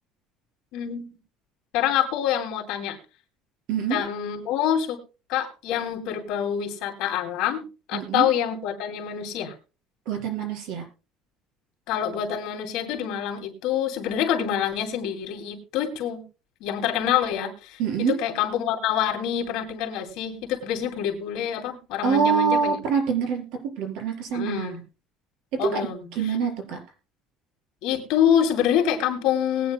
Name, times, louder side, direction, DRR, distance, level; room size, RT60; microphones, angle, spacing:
voice 1, 0.7-1.1 1.7-3.0 3.9-5.0 5.3-7.6 7.9-9.5 11.9-16.2 16.6-17.8 18.2-22.8 24.3-24.8 25.6-26.0 27.8-29.7, left 9 dB, 65° left, 4 dB, 2.6 m, -26 dB
voice 2, 3.7-4.0 7.9-8.3 10.1-10.8 17.8-18.2 22.0-24.8 25.5-25.8 26.2-26.8, right 6 dB, 65° right, 3 dB, 4.3 m, -25 dB
20.5 x 9.2 x 2.2 m, 0.32 s
cardioid pair, 175°, 0 cm